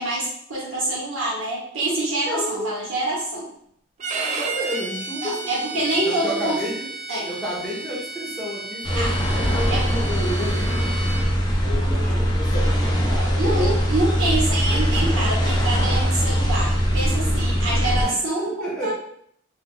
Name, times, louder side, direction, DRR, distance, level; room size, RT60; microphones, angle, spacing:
voice 1, 0.0-3.5 5.2-6.6 7.1-7.3 9.0-9.1 9.7-9.8 13.4-18.9, right 2 dB, 75° right, -5 dB, 1.2 m, -26 dB
voice 2, 2.3-2.6 4.1-6.9 7.3-11.0 11.6-13.7 18.0-18.9, equal, 5° left, -7 dB, 0.9 m, -31 dB
Bowed string instrument, 4.0-11.3, right 3 dB, 35° right, 0.3 m, -33 dB
sound 1, 8.8-18.0, equal, 20° left, 0.5 m, -21 dB
2.4 x 2.3 x 3.7 m, 0.67 s
head